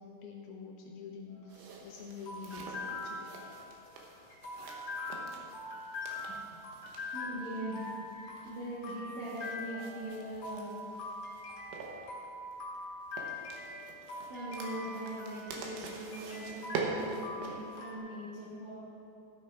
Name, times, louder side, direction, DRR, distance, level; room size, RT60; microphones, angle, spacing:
voice 1, 0.0-3.3, left 5 dB, 80° left, 0 dB, 2.5 m, -47 dB
sound 1, 1.3-18.0, left 2 dB, 55° left, 3.1 m, -43 dB
sound 2, 1.5-17.8, right 3 dB, 75° right, 3.0 m, -45 dB
voice 2, 7.0-10.8 14.3-17.1 17.4-18.7, right 1 dB, 50° right, -10 dB, 2.5 m, -41 dB
14.5 x 6.6 x 4.6 m, 2.8 s
omnidirectional pair, 4.9 m